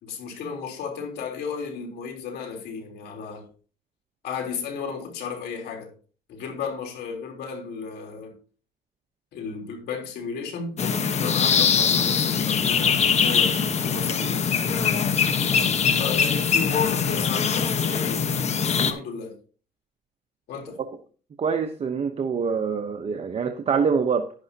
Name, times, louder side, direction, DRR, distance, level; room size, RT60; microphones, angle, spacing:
voice 1, 0.0-3.5 4.2-5.9 6.3-8.4 9.3-10.8 11.2-14.6 16.0-18.3 18.6-19.4 20.5-20.8, left 6 dB, 75° left, 3.7 m, -33 dB
sound 1, 10.8-18.9, left 6 dB, 40° left, 1.2 m, -22 dB
voice 2, 21.4-24.3, right 6 dB, 35° right, 1.0 m, -25 dB
11.0 x 11.0 x 2.9 m
cardioid pair, 110°, 17 cm